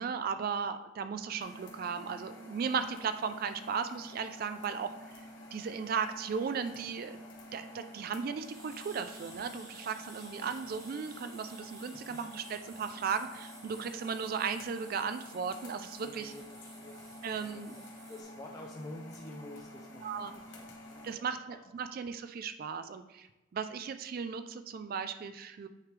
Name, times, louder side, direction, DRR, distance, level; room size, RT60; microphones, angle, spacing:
voice 1, 0.0-4.9 5.5-7.2 7.5-16.3 17.2-17.7 20.0-20.3 21.0-23.3 23.5-25.7, right 6 dB, 50° right, 9 dB, 0.3 m, -36 dB
sound 1, 1.4-21.1, left 1 dB, 85° left, 1.1 m, -49 dB
sound 2, 8.4-18.2, right 2 dB, 15° right, 1.0 m, -54 dB
voice 2, 10.2-10.5 11.9-12.2 16.0-17.8 18.1-22.0, left 1 dB, 20° left, -2 dB, 0.5 m, -50 dB
9.2 x 3.2 x 3.3 m, 0.98 s
head